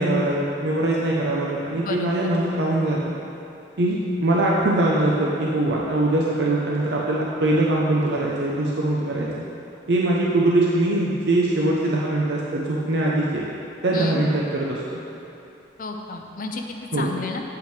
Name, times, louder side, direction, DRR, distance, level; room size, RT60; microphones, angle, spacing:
voice 1, 0.0-3.1 3.8-9.4 9.9-13.4 13.8-15.0 16.9-17.1, right 1 dB, 70° right, -4 dB, 0.7 m, -22 dB
voice 2, 1.7-2.3 13.9-14.2 15.8-16.6 16.9-17.4, left 3 dB, 50° left, 3 dB, 0.6 m, -31 dB
8.2 x 8.2 x 3.3 m, 2.9 s
head